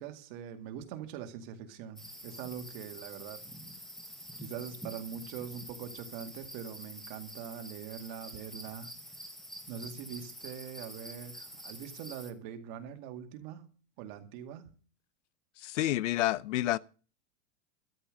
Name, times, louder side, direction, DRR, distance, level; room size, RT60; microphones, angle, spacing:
voice 1, 0.0-3.4 4.4-8.9 9.7-13.7 14.0-14.7, right 8 dB, 40° right, 2.2 m, -43 dB
sound 1, 2.0-12.3, equal, ahead, 0.8 m, -47 dB
voice 2, 15.6-16.8, left 15 dB, 85° left, 0.8 m, -29 dB
13.0 x 7.0 x 8.8 m
supercardioid pair, 175°, 36 cm